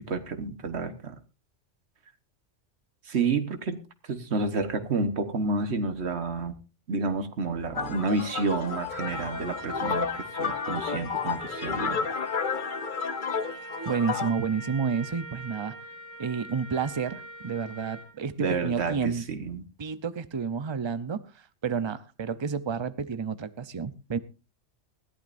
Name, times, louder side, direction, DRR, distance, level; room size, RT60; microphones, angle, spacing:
voice 1, 0.1-1.2 3.1-3.8 4.1-6.5 6.9-12.1 18.4-19.6, right 4 dB, 65° right, 9 dB, 1.6 m, -30 dB
sound 1, 7.7-14.3, left 6 dB, 45° left, 1.0 m, -31 dB
Trumpet, 8.9-18.2, right 1 dB, 80° left, 3.3 m, -43 dB
voice 2, 13.9-15.7 16.2-19.2 19.8-21.2 21.6-24.2, right 6 dB, 30° right, 13 dB, 0.7 m, -30 dB
20.5 x 14.0 x 2.6 m, 0.30 s
omnidirectional pair, 1.2 m